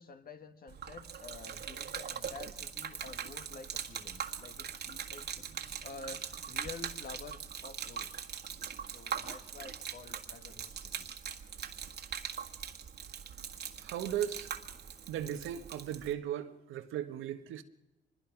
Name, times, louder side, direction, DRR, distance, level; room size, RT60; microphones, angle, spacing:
voice 1, 0.0-8.3 8.8-11.1, left 4 dB, 50° left, 1.7 m, -50 dB
Gurgling / Liquid, 0.7-16.1, right 8 dB, 55° right, 1.7 m, -42 dB
voice 2, 13.8-14.5 15.1-17.6, right 10 dB, 90° right, 1.4 m, -37 dB
24.5 x 21.0 x 6.0 m
cardioid pair, 90°, 20 cm